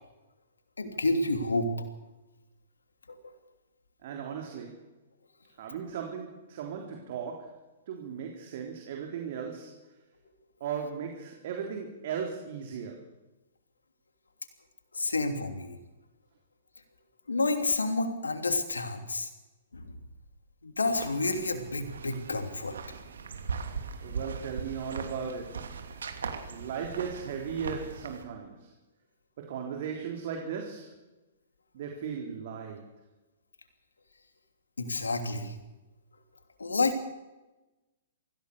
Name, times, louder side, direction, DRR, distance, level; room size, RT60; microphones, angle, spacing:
voice 1, 0.8-1.7 14.9-15.8 17.3-19.3 19.7-19.8 20.6-22.7 34.8-35.5 36.6-37.1, left 2 dB, 85° left, 7 dB, 3.1 m, -29 dB
voice 2, 4.0-4.8 5.6-7.6 7.9-9.8 10.6-13.0 24.0-25.7 26.5-28.7 29.4-31.0 31.7-32.9, right 7 dB, 55° right, 2 dB, 3.8 m, -37 dB
sound 1, 20.8-28.2, right 5 dB, 75° right, 2.9 m, -39 dB
24.5 x 16.0 x 6.8 m, 1.1 s
figure-of-eight pair, 115°, 0 cm